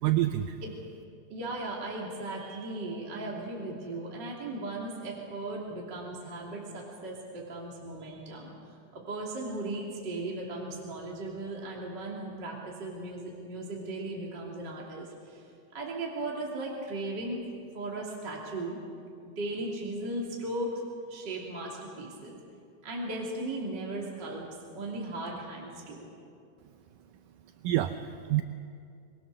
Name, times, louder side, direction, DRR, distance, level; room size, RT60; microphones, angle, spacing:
voice 1, 0.0-0.6 27.6-28.4, right 14 dB, 80° right, 8 dB, 2.2 m, -27 dB
voice 2, 1.3-8.5 8.9-15.5 15.7-17.4 17.7-18.8 19.2-22.4 22.8-24.4 24.7-26.1, right 2 dB, 30° right, -3 dB, 3.1 m, -37 dB
25.0 x 22.5 x 6.6 m, 2.5 s
omnidirectional pair, 4.0 m